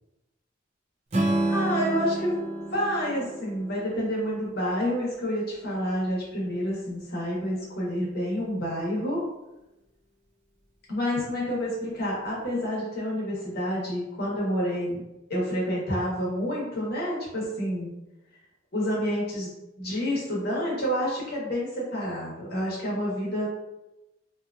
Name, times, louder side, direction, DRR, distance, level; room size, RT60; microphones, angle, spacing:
Strum, 1.1-5.3, right 1 dB, 35° right, 0.4 m, -30 dB
voice 1, 1.5-2.3 2.7-9.2 10.9-15.0 15.3-17.9 18.7-23.6, equal, 55° left, -5 dB, 0.9 m, -29 dB
2.7 x 2.4 x 2.3 m, 0.96 s
head